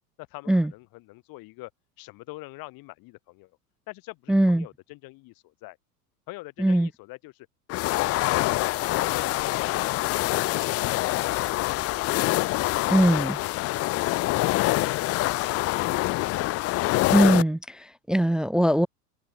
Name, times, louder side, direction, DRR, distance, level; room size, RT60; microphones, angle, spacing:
voice 1, 0.2-1.7 2.0-3.5 3.9-5.8 6.3-7.5 9.1-9.7 10.0-12.2 12.4-12.9, left 22 dB, 45° left, 4.3 m, -44 dB
voice 2, 4.3-4.7 6.6-6.9 12.9-13.4 17.1-18.9, right 1 dB, ahead, 0.3 m, -21 dB
sound 1, 7.7-17.4, left 19 dB, 30° left, 0.7 m, -25 dB
figure-of-eight pair, 85°, 48 cm